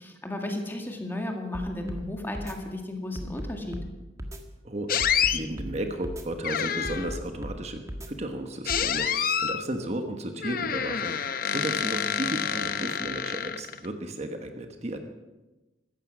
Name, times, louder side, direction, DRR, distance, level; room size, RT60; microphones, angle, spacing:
voice 1, 0.0-3.8, left 1 dB, 10° left, 3 dB, 1.9 m, -34 dB
sound 1, 1.5-2.0 2.3-2.6 3.2-3.9 4.2-4.4 5.0-5.7 6.0-6.3 6.8-7.6 7.9-8.1 8.7-8.9, equal, 15° right, 1.4 m, -36 dB
voice 2, 4.6-11.2 11.5-15.0, right 1 dB, 35° right, 5 dB, 1.2 m, -34 dB
sound 2, 4.9-5.4 6.4-7.2 8.7-9.6 10.4-13.9, left 8 dB, 50° left, 0.8 m, -28 dB
16.0 x 13.5 x 6.1 m, 1.1 s
head